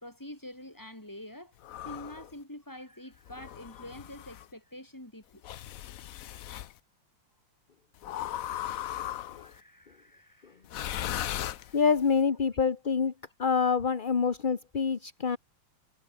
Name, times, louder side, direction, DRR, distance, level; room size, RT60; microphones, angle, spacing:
voice 1, 0.0-1.5 1.8-5.4 9.3-10.6 11.0-11.8, left 1 dB, 10° left, 4.2 m, -46 dB
sound 1, 1.6-2.3 3.3-4.5 5.4-6.7 8.0-9.6 10.6-12.1, left 12 dB, 65° left, 0.8 m, -37 dB
voice 2, 11.7-13.1 13.4-15.4, left 5 dB, 35° left, 1.0 m, -26 dB
omnidirectional pair, 2.1 m